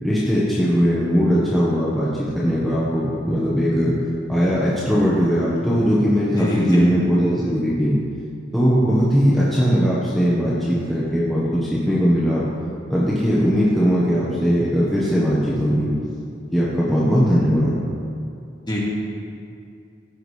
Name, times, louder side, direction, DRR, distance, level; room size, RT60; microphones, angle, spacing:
voice 1, 0.0-4.0 4.3-8.0 8.5-12.5 12.9-15.9 16.5-17.8, equal, ahead, -9 dB, 1.2 m, -19 dB
voice 2, 6.4-6.9 18.7-18.8, equal, 25° left, -6 dB, 2.1 m, -23 dB
15.5 x 6.2 x 3.3 m, 2.4 s
head